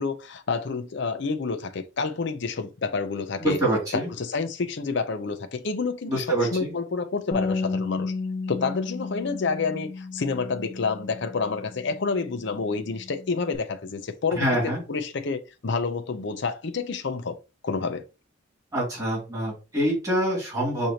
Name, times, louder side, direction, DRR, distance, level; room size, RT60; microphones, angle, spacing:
voice 1, 0.0-3.6 3.9-8.1 8.5-17.4 17.6-18.0, left 4 dB, 60° left, 0.6 m, -29 dB
voice 2, 3.4-4.1 6.1-6.7 14.3-14.8 18.7-20.9, right 1 dB, 20° right, 2.5 m, -25 dB
Bass guitar, 7.3-13.6, left 3 dB, 30° left, 1.1 m, -33 dB
6.4 x 2.7 x 2.9 m
head